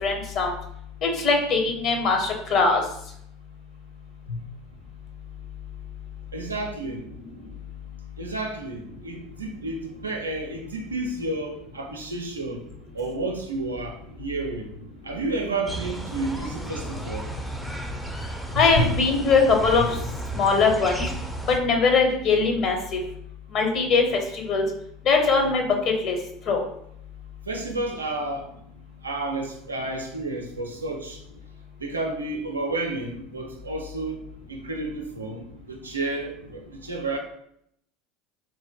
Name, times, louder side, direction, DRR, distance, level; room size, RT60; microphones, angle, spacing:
voice 1, 0.0-0.5 1.0-2.8 18.5-20.0 20.3-21.0 21.5-23.0 23.5-24.6 25.0-25.6 26.0-26.2 26.5-26.6, left 4 dB, 45° left, 2 dB, 0.7 m, -21 dB
voice 2, 6.3-7.0 8.2-12.6 12.9-14.7 15.0-17.3 18.6-18.9 19.8-19.9 27.5-28.5 29.0-31.2 31.8-34.2 34.5-37.2, right 2 dB, 85° right, 3 dB, 0.4 m, -31 dB
sound 1, 15.7-21.6, right 1 dB, ahead, 0.5 m, -33 dB
3.7 x 2.4 x 2.2 m, 0.72 s
figure-of-eight pair, 70°, 0 cm